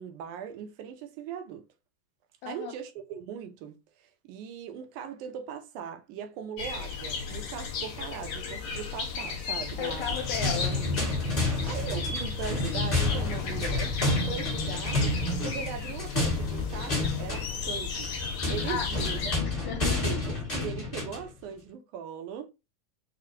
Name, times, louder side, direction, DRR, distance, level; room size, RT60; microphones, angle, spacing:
voice 1, 0.0-1.7 2.5-10.2 10.7-10.9 11.6-14.0 14.3-15.1 15.4-18.1 18.5-19.4 19.8-22.5, right 8 dB, 75° right, 2.1 m, -39 dB
voice 2, 2.4-2.7 9.8-10.8 18.6-18.9 19.6-20.0, left 7 dB, 80° left, 1.8 m, -34 dB
sound 1, 6.6-19.4, left 5 dB, 60° left, 2.1 m, -35 dB
sound 2, 9.9-21.3, left 2 dB, 25° left, 1.3 m, -30 dB
6.7 x 2.3 x 2.8 m
omnidirectional pair, 4.0 m